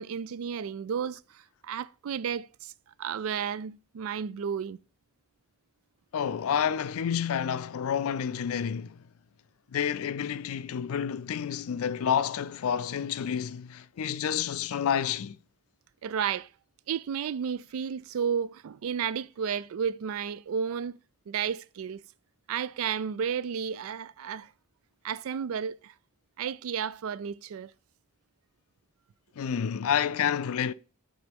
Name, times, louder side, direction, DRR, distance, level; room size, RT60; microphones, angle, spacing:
voice 1, 0.0-2.7 3.0-4.8 16.0-16.5 16.9-21.0 21.3-22.0 22.5-24.5 25.0-25.9 26.4-27.7, right 7 dB, 70° right, 0.3 m, -32 dB
voice 2, 6.1-9.0 9.7-15.4 29.4-30.7, left 8 dB, 75° left, 0.4 m, -29 dB
9.5 x 3.9 x 3.5 m
head